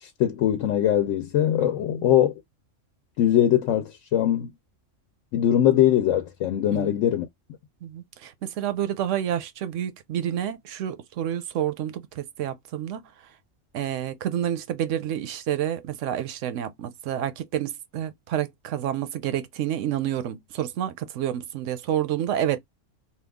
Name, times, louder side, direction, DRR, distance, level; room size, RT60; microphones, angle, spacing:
voice 1, 0.0-2.3 3.2-4.5 5.3-7.3, left 11 dB, 75° left, 0.9 m, -21 dB
voice 2, 7.8-13.0 13.7-22.6, right 11 dB, 75° right, 0.9 m, -29 dB
2.9 x 2.3 x 3.4 m
omnidirectional pair, 1.3 m